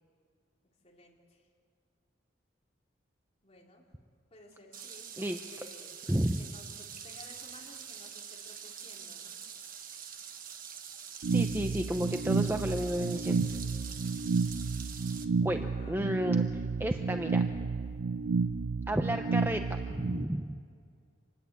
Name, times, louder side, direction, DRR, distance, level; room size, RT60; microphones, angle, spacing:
voice 1, 0.8-1.5 3.4-3.9 4.3-5.9 6.4-9.4 15.7-16.3, left 2 dB, 35° left, -2 dB, 3.8 m, -56 dB
sound 1, 4.7-15.2, right 7 dB, 45° right, 1.4 m, -45 dB
voice 2, 6.1-6.4 11.3-13.5 15.4-16.4 16.8-17.4 18.9-20.6, equal, 10° right, 6 dB, 0.7 m, -32 dB
sound 2, 11.2-20.2, right 4 dB, 85° right, 0.5 m, -31 dB
26.0 x 19.5 x 8.4 m, 2.2 s
head